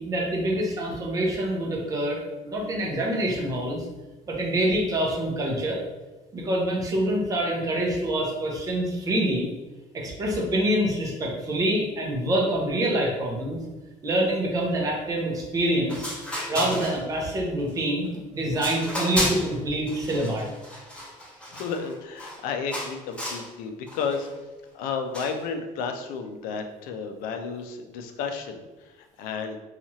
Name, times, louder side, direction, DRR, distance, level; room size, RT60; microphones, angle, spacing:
voice 1, 0.0-3.8 4.3-5.8 6.3-9.5 9.9-13.6 14.0-16.1 16.5-20.5, right 1 dB, 25° right, -2 dB, 0.6 m, -26 dB
sound 1, 15.6-15.7 15.9-17.3 17.7-18.1 18.5-19.5 19.9-22.4 22.7-23.5 23.9-24.3 25.1-25.4, left 1 dB, 5° left, 1.3 m, -33 dB
voice 2, 21.5-24.3 24.7-29.6, left 5 dB, 75° left, 5 dB, 0.4 m, -32 dB
2.9 x 2.4 x 2.7 m, 1.1 s
cardioid pair, 165°, 15 cm